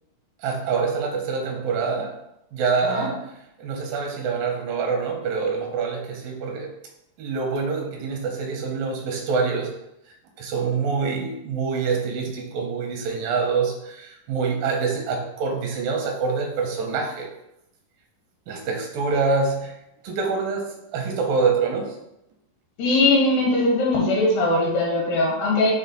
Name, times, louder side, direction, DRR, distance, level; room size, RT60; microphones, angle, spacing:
voice 1, 0.4-2.1 2.5-3.2 3.6-6.7 7.2-9.7 10.4-17.3 18.5-19.7 20.0-21.9, right 4 dB, 85° right, 2 dB, 2.4 m, -25 dB
voice 2, 22.8-25.7, left 2 dB, 75° left, -2 dB, 2.9 m, -20 dB
6.3 x 2.2 x 3.8 m, 0.84 s
omnidirectional pair, 4.1 m